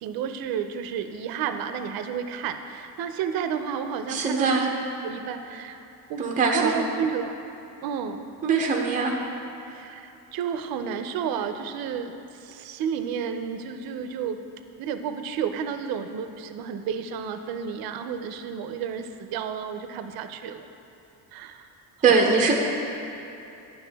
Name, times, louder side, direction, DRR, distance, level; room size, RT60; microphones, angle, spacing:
voice 1, 0.0-4.7 5.0-5.8 6.1-6.2 6.5-7.3 7.8-8.2 9.7-12.1 12.4-14.4 14.8-20.7 21.3-21.7 22.0-22.1, right 7 dB, 65° right, 8 dB, 0.6 m, -31 dB
voice 2, 4.1-4.7 6.2-6.7 8.4-9.1 22.0-22.6, right 4 dB, 20° right, 0 dB, 0.6 m, -21 dB
9.3 x 6.5 x 3.4 m, 2.9 s
cardioid pair, 130°, 38 cm